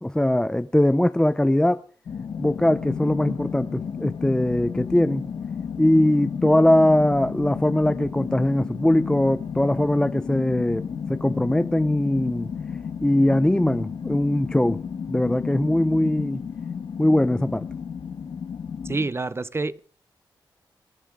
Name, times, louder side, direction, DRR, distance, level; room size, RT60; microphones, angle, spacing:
voice 1, 0.0-1.8 2.4-5.3 5.8-10.8 11.1-12.5 13.0-14.8 15.1-16.5 17.0-17.6, left 1 dB, 10° left, 0.6 m, -21 dB
sound 1, 2.1-19.1, left 6 dB, 75° left, 1.6 m, -32 dB
voice 2, 18.8-19.8, right 3 dB, 30° right, 0.8 m, -27 dB
25.0 x 12.5 x 3.8 m
cardioid pair, 75°, 8 cm